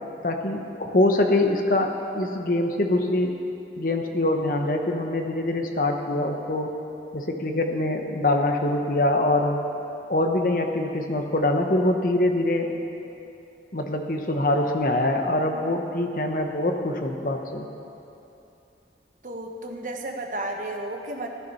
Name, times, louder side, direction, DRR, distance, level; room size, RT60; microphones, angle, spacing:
voice 1, 0.2-3.4 3.8-6.7 7.1-9.6 10.1-12.7 13.7-17.7, left 1 dB, 50° left, 4 dB, 1.1 m, -24 dB
voice 2, 19.2-21.3, right 1 dB, 45° right, 2 dB, 1.2 m, -33 dB
14.0 x 11.0 x 5.6 m, 2.8 s
head